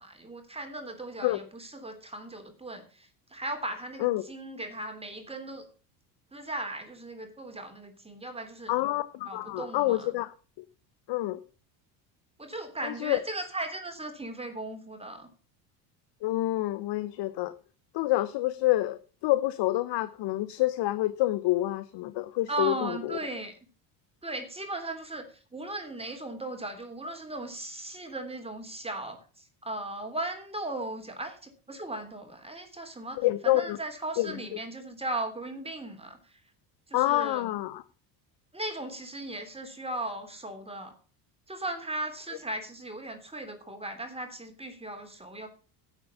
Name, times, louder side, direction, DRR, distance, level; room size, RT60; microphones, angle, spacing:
voice 1, 0.0-5.7 6.3-8.7 9.2-10.1 12.4-15.3 22.5-23.5 24.2-36.4 36.9-37.5 38.5-40.9 41.5-45.5, right 2 dB, 10° right, 5 dB, 3.2 m, -37 dB
voice 2, 8.7-10.3 11.1-11.4 12.8-13.2 16.2-17.5 17.9-23.2 33.2-33.8 34.2-34.3 36.9-37.8, left 16 dB, 55° left, 13 dB, 1.0 m, -27 dB
11.5 x 8.2 x 7.0 m, 0.38 s
supercardioid pair, 90°, 49 cm